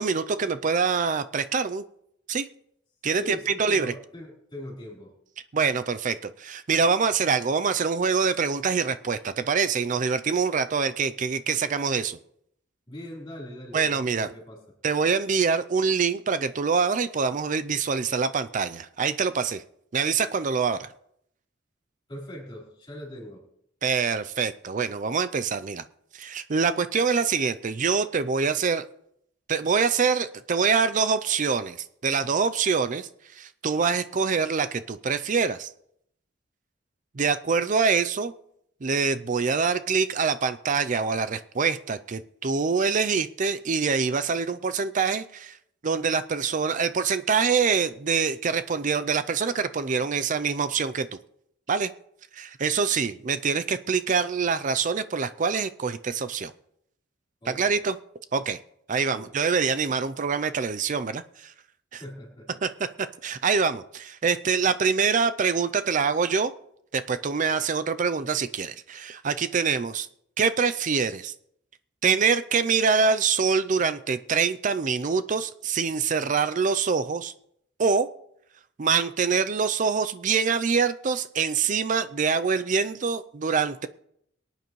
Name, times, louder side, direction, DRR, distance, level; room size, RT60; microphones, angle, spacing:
voice 1, 0.0-1.8 2.3-2.5 3.0-3.9 5.5-12.2 13.7-14.3 14.8-19.6 19.9-20.9 23.8-25.8 26.1-28.8 29.5-31.8 32.0-33.1 33.4-35.7 37.2-38.3 38.8-45.6 45.8-51.1 51.7-51.9 52.3-56.5 57.5-58.0 58.3-58.6 58.9-61.5 61.9-62.0 62.6-66.5 66.9-70.1 70.4-71.3 72.0-77.3 77.8-78.1 78.8-83.9, right 5 dB, 45° right, 12 dB, 0.5 m, -25 dB
voice 2, 3.1-5.1 12.9-14.6 22.1-23.4 57.4-57.7 59.1-59.3 62.0-62.6, left 1 dB, 25° left, -1 dB, 4.3 m, -41 dB
23.5 x 9.2 x 3.1 m, 0.74 s
head